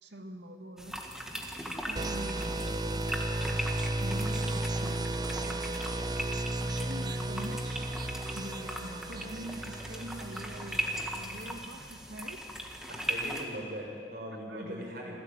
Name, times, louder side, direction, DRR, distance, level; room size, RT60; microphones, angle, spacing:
voice 1, 0.0-1.0 1.8-3.7 4.0-5.9 6.6-7.9 8.3-12.4 13.0-13.1 14.5-15.2, right 1 dB, 80° right, 5 dB, 2.0 m, -44 dB
sound 1, 0.8-13.4, equal, 5° right, 2.0 m, -39 dB
sound 2, 2.0-11.6, right 2 dB, 25° right, 0.6 m, -34 dB
voice 2, 12.9-15.2, equal, 55° right, 0 dB, 6.6 m, -40 dB
26.0 x 17.0 x 9.0 m, 2.2 s
head